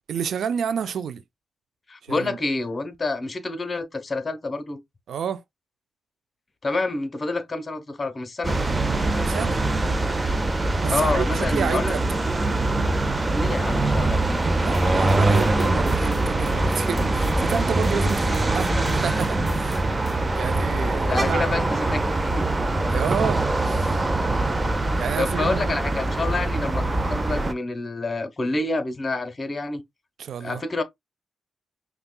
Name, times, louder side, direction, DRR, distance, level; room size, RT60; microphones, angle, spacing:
voice 1, 0.1-1.2 2.0-2.4 5.1-5.4 9.3-9.6 10.8-12.0 14.6-19.9 20.4-21.5 22.9-24.0 25.0-25.7 30.2-30.6, right 7 dB, 75° right, 0.3 m, -30 dB
voice 2, 1.9-4.8 6.6-8.6 10.9-11.9 13.3-14.2 21.0-22.5 25.2-29.8 30.4-30.8, left 3 dB, 35° left, 0.9 m, -28 dB
sound 1, 8.4-27.5, right 2 dB, 25° right, 0.6 m, -23 dB
sound 2, 14.7-20.2, left 3 dB, 15° left, 1.6 m, -35 dB
5.3 x 2.3 x 2.2 m
cardioid pair, 65°, 0 cm